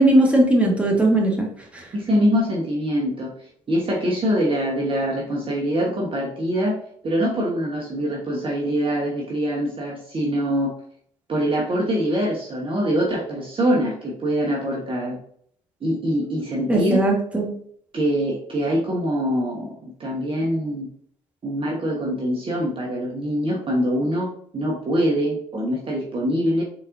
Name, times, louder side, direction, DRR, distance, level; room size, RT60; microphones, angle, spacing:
voice 1, 0.0-1.5 1.7-1.8 16.7-17.5, right 1 dB, 10° right, -1 dB, 1.5 m, -18 dB
voice 2, 1.9-3.3 3.7-6.8 7.0-10.7 11.3-15.2 15.8-17.0 17.9-20.9 21.4-24.3 24.5-26.6, equal, 35° right, -2 dB, 1.1 m, -24 dB
4.1 x 4.0 x 2.5 m, 0.63 s
hypercardioid pair, 60°, 16 cm